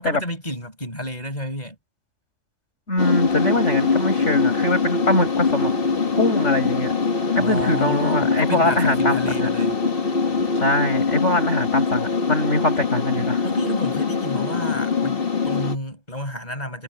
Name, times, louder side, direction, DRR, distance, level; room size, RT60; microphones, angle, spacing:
voice 1, 0.0-1.8 7.4-9.8 13.4-16.8, left 1 dB, 35° left, 6.0 m, -31 dB
voice 2, 2.9-5.7 6.2-6.9 7.3-9.5 10.5-13.4, left 1 dB, 70° left, 6.5 m, -22 dB
sound 1, 3.0-15.8, left 4 dB, 50° left, 2.0 m, -23 dB
omnidirectional pair, 1.3 m